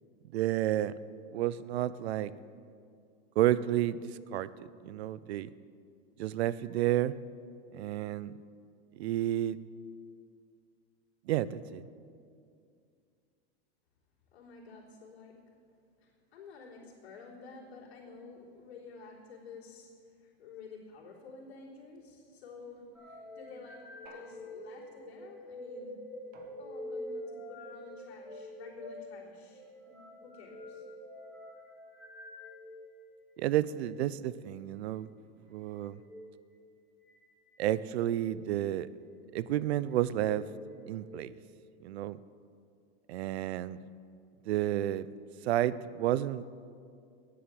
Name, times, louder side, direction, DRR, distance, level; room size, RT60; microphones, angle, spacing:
voice 1, 0.3-0.9 1.3-2.3 3.4-5.5 6.2-7.1 7.7-8.3 9.0-9.6 11.3-11.8 33.4-35.1 35.5-36.0 37.6-38.9 39.3-40.5 40.9-41.4 41.8-42.2 43.1-43.8 44.5-45.1 45.4-46.4, right 13 dB, 80° right, 18 dB, 0.5 m, -31 dB
voice 2, 14.3-15.4 16.0-26.0 26.6-30.9, left 4 dB, 80° left, -5 dB, 3.7 m, -51 dB
sound 1, 22.9-32.9 33.6-33.9 35.9-36.2 37.1-37.6 38.1-38.4 39.2-39.7 40.2-41.2, left 1 dB, 5° right, 2.6 m, -46 dB
sound 2, 24.1-25.1 26.3-27.2, right 5 dB, 30° right, 1.1 m, -58 dB
10.0 x 8.7 x 7.6 m, 2.3 s
supercardioid pair, 155°, 32 cm